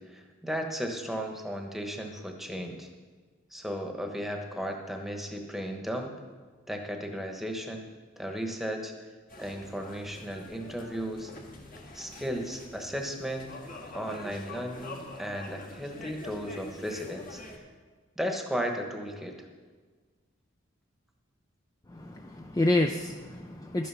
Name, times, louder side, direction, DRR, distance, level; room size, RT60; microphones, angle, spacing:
voice 1, 0.0-2.9 3.5-6.1 6.7-7.9 8.2-8.9 9.4-11.3 11.9-13.6 13.9-17.4 18.2-19.5, equal, ahead, 3 dB, 1.1 m, -35 dB
sound 1, 9.3-17.6, left 2 dB, 45° left, 1.6 m, -45 dB
voice 2, 21.9-23.9, left 2 dB, 15° left, 5 dB, 0.4 m, -28 dB
12.0 x 9.3 x 5.7 m, 1.5 s
head